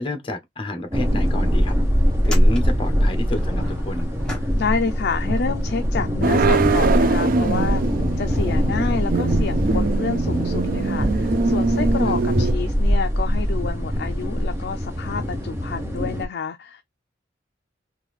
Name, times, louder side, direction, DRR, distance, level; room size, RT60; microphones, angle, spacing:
voice 1, 0.0-1.8 2.2-4.1 12.1-12.2, left 1 dB, 30° left, 1.0 m, -29 dB
sound 1, 0.8-0.9 1.2-1.3 2.1-5.0 5.3-8.0 8.7-8.8 12.9-13.0 14.4-14.5, left 1 dB, 5° left, 1.5 m, -38 dB
sound 2, 0.9-16.3, equal, 15° right, 0.9 m, -22 dB
voice 2, 4.5-7.8 8.2-16.8, left 5 dB, 60° left, 0.4 m, -28 dB
sound 3, 6.2-12.5, right 4 dB, 50° right, 0.3 m, -23 dB
3.9 x 2.6 x 3.2 m
head